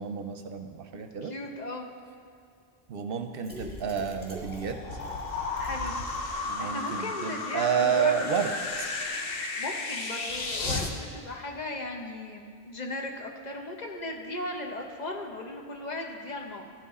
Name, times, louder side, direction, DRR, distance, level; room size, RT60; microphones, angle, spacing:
voice 1, 0.0-1.3 2.9-4.8 6.4-8.5, right 7 dB, 70° right, 6 dB, 0.8 m, -30 dB
voice 2, 1.2-1.9 5.6-5.9 6.6-8.1 9.6-16.7, left 2 dB, 45° left, 2 dB, 0.9 m, -37 dB
sound 1, 3.4-6.5 6.9-7.0 7.3-7.4, right 1 dB, 10° right, 1.6 m, -47 dB
sound 2, 3.5-10.9, left 3 dB, 70° left, 1.0 m, -34 dB
14.5 x 5.9 x 4.2 m, 2.2 s
omnidirectional pair, 1.0 m